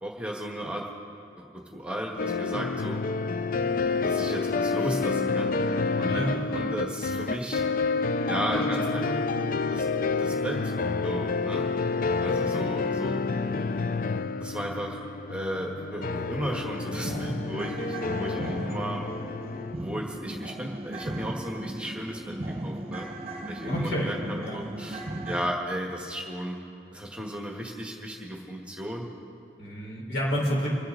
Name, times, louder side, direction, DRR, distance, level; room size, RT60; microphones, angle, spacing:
voice 1, 0.0-0.9 1.4-3.0 4.0-5.5 6.0-7.6 8.3-9.2 9.7-9.9 10.2-10.7 11.0-11.7 12.2-13.2 14.4-15.0 15.3-19.1 19.7-23.1 23.5-26.6 26.9-29.0, equal, 5° right, -1 dB, 1.5 m, -34 dB
sound 1, 2.2-19.7, left 4 dB, 50° left, 0.4 m, -29 dB
voice 2, 6.1-6.4 8.6-9.1 9.3-9.5 23.6-24.1 24.4-24.6 29.6-30.7, equal, 70° left, -3 dB, 4.4 m, -30 dB
sound 2, 16.4-25.5, right 1 dB, 35° right, 1.0 m, -36 dB
28.0 x 10.0 x 3.9 m, 2.6 s
head